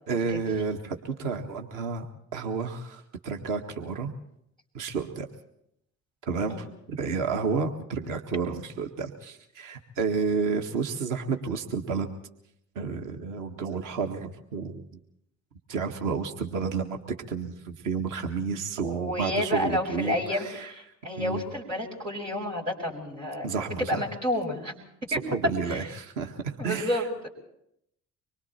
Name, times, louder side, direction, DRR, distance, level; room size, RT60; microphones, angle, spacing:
voice 1, 0.1-2.1 2.3-4.1 4.7-5.3 6.3-12.1 12.8-15.0 15.7-20.7 21.2-21.4 23.4-24.0 25.1-27.1, right 5 dB, 55° right, 5 dB, 1.8 m, -31 dB
voice 2, 18.8-24.7 25.1-25.2 25.7-25.8 26.6-27.3, left 1 dB, 85° right, -4 dB, 4.9 m, -30 dB
25.5 x 23.0 x 4.4 m, 0.75 s
figure-of-eight pair, 50°, 37 cm